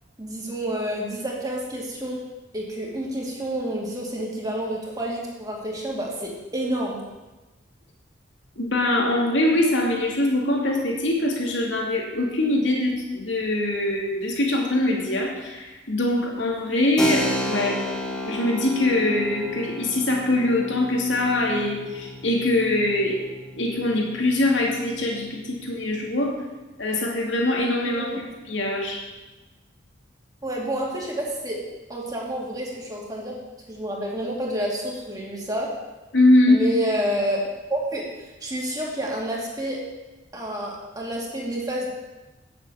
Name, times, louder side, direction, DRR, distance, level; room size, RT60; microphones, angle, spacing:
voice 1, 0.2-2.2 2.5-7.0 17.2-17.3 27.8-28.2 30.4-31.6 31.9-33.4 33.7-35.7 36.5-39.8 40.3-41.9, right 1 dB, 20° right, -2 dB, 2.4 m, -29 dB
voice 2, 8.6-17.8 18.2-23.3 23.6-26.4 26.8-28.1 28.5-29.0 36.1-36.6, left 1 dB, 80° left, -1 dB, 2.5 m, -23 dB
Keyboard (musical), 17.0-25.4, left 1 dB, 5° left, 1.5 m, -33 dB
9.6 x 8.0 x 7.3 m, 1.1 s
head